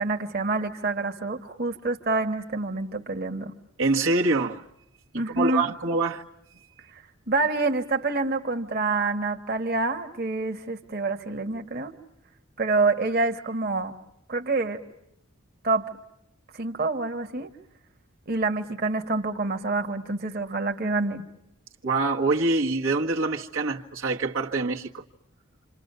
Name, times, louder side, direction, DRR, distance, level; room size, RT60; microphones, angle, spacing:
voice 1, 0.0-3.5 5.1-5.7 6.9-11.9 12.6-13.9 14.3-14.8 15.6-15.9 16.5-17.5 18.3-21.2, right 3 dB, 50° right, 1.6 m, -27 dB
voice 2, 3.8-4.6 5.3-6.2 21.8-25.0, right 3 dB, 90° right, 1.9 m, -25 dB
28.5 x 28.0 x 6.9 m
head